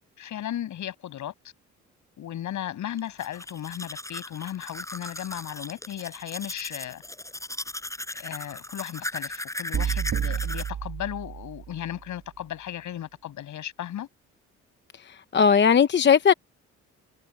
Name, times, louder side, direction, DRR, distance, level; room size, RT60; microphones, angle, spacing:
voice 1, 0.0-1.3 2.2-7.0 8.1-14.1, left 11 dB, 75° left, 6.8 m, -36 dB
Domestic sounds home sounds, 3.0-10.7, left 1 dB, 10° left, 7.6 m, -37 dB
sound 1, 9.7-11.9, right 9 dB, 60° right, 2.5 m, -30 dB
voice 2, 15.3-16.3, left 7 dB, 35° left, 0.8 m, -17 dB
cardioid pair, 90°, 30 cm